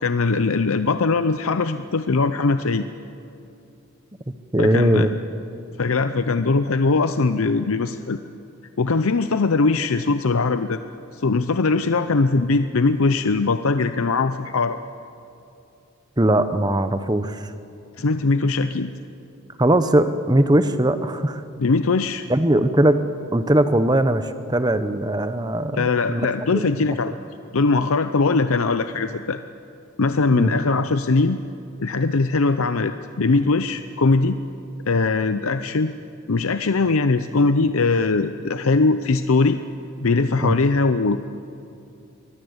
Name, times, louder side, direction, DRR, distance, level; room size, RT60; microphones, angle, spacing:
voice 1, 0.0-2.9 4.6-5.1 5.8-8.2 8.8-10.8 11.1-14.8 18.0-18.9 21.6-22.2 25.7-27.1 27.5-29.4 30.0-31.4 31.8-34.4 34.9-35.9 36.3-39.6 40.0-41.2, left 3 dB, 80° left, 10 dB, 0.7 m, -21 dB
voice 2, 4.5-5.1 16.2-17.5 19.6-21.4 22.3-23.0 23.3-26.3 26.5-26.7 30.3-30.5 40.4-40.5, right 1 dB, 20° right, 10 dB, 0.9 m, -20 dB
24.0 x 21.0 x 8.0 m, 2.7 s
head